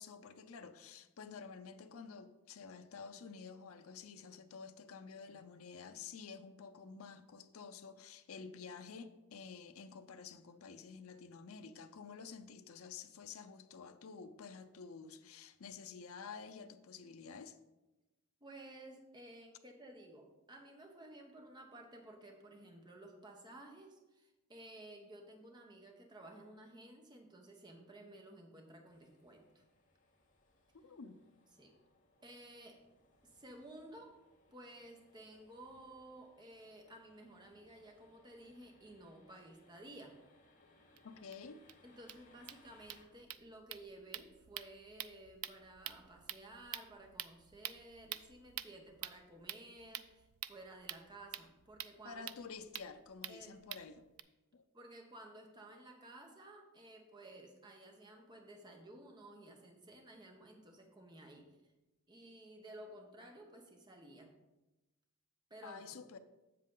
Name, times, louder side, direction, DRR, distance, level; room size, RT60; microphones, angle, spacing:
voice 1, 0.0-17.6 30.8-31.2 41.0-41.6 52.0-54.1 54.5-54.6 65.6-66.2, left 5 dB, 70° left, 0.5 m, -50 dB
voice 2, 18.4-29.6 31.5-31.7 32.2-32.8 33.2-34.1 34.5-40.2 41.8-52.3 53.3-53.6 54.7-61.6 62.1-64.3 65.5-65.8, right 1 dB, 20° right, 0.9 m, -55 dB
sound 1, 28.9-43.0, left 2 dB, 35° left, 1.7 m, -69 dB
sound 2, 41.0-41.1 41.3-41.4 41.7-41.8 42.0-54.2, right 13 dB, 75° right, 0.4 m, -48 dB
7.6 x 7.3 x 3.8 m
head